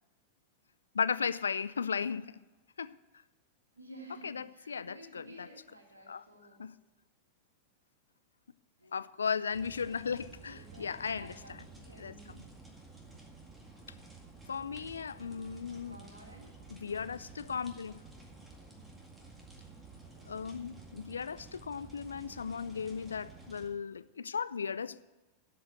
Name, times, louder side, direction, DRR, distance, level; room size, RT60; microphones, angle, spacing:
voice 1, 0.9-2.3 2.8-2.9 4.2-5.5 6.1-6.2 6.6-6.7 8.9-11.3 12.0-12.4 14.5-16.0 16.7-18.0 20.3-25.0, left 6 dB, 70° left, 0.3 m, -36 dB
voice 2, 1.8-2.1 3.7-6.6 8.8-9.0 10.4-11.6 11.8-12.3 15.6-16.6, right 1 dB, 80° right, 2.1 m, -53 dB
sound 1, 9.5-23.7, right 3 dB, 10° right, 2.0 m, -52 dB
12.0 x 5.1 x 8.2 m
figure-of-eight pair, 90°, 0 cm